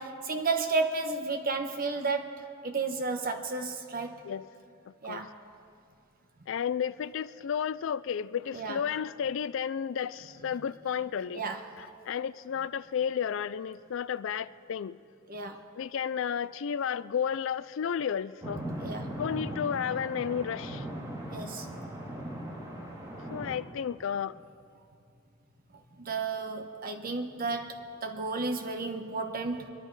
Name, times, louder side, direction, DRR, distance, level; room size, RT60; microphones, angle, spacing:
voice 1, 0.0-4.2 5.0-5.3 8.5-8.8 11.4-11.8 15.3-15.6 18.8-19.1 21.3-21.7 26.0-29.7, right 3 dB, 45° right, 5 dB, 1.1 m, -32 dB
voice 2, 4.9-5.3 6.5-11.4 11.8-15.0 15.7-18.6 19.2-20.9 23.3-24.4, left 8 dB, 65° left, 16 dB, 0.4 m, -32 dB
sound 1, 18.4-23.6, right 1 dB, 15° right, 2.6 m, -39 dB
25.0 x 11.0 x 4.7 m, 2.4 s
head